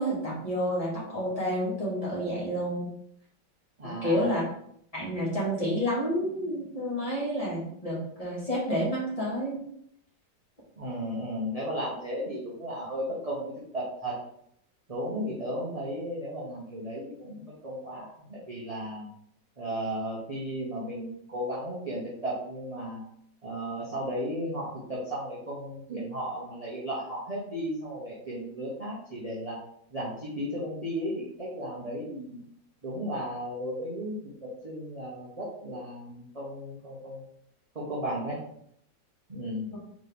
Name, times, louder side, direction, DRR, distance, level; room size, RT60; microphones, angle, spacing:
voice 1, 0.0-2.9 3.8-4.4 4.9-9.6, equal, 20° left, -8 dB, 1.7 m, -29 dB
voice 2, 3.8-4.3 10.8-14.1 14.9-19.1 19.6-23.0 23.4-29.6 29.9-32.4 32.8-37.2 37.7-38.4 39.3-39.7, equal, 25° right, -6 dB, 0.8 m, -35 dB
4.0 x 3.7 x 3.5 m, 0.70 s
omnidirectional pair, 2.0 m